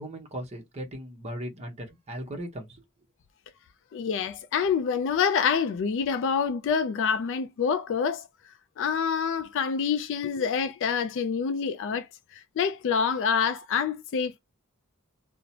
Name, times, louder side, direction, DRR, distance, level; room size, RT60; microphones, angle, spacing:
voice 1, 0.0-2.8, right 1 dB, 30° right, 0.8 m, -38 dB
voice 2, 3.9-8.2 8.8-12.1 12.3-14.4, left 6 dB, 60° left, 0.3 m, -27 dB
2.7 x 2.0 x 2.6 m
head